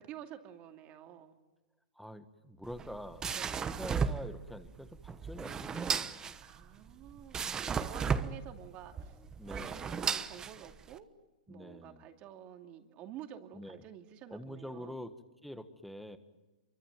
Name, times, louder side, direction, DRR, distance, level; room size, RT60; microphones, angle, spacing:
voice 1, 0.0-1.4 3.3-3.6 6.4-9.2 9.5-11.1 11.5-15.0, right 10 dB, 30° right, 5 dB, 2.5 m, -50 dB
voice 2, 1.9-3.3 3.6-6.3 9.4-10.0 11.5-12.1 13.5-13.8 14.3-15.1 15.4-16.2, equal, ahead, 9 dB, 1.6 m, -46 dB
sound 1, 2.6-11.0, right 6 dB, 15° right, 1.1 m, -35 dB
26.5 x 24.0 x 9.3 m, 1.0 s
hypercardioid pair, 145°, 4 cm